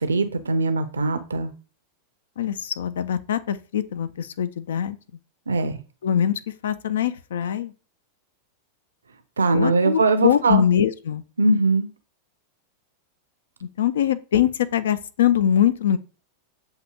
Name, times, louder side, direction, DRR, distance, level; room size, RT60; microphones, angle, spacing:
voice 1, 0.0-1.5 5.5-5.7 9.4-10.6 11.4-11.9, right 3 dB, 70° right, 0.5 m, -21 dB
voice 2, 2.4-5.0 6.0-7.7 9.5-11.2 13.8-16.0, left 9 dB, 60° left, 0.3 m, -23 dB
7.3 x 2.7 x 2.3 m
figure-of-eight pair, 90°, 0 cm